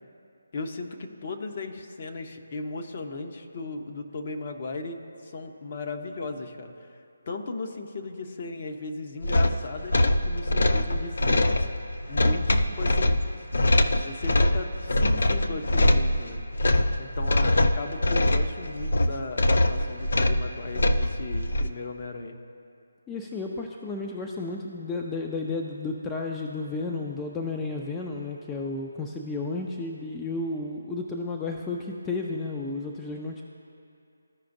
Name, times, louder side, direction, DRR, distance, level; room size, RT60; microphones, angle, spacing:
voice 1, 0.5-6.9 7.3-11.5 12.1-13.2 14.0-16.4 17.0-22.4, left 3 dB, 45° left, 4 dB, 0.7 m, -36 dB
sound 1, 9.2-21.7, left 1 dB, 70° left, 0.5 m, -23 dB
voice 2, 23.1-33.4, left 3 dB, 10° left, 0 dB, 0.4 m, -32 dB
14.0 x 5.0 x 2.6 m, 2.5 s
figure-of-eight pair, 160°, 0 cm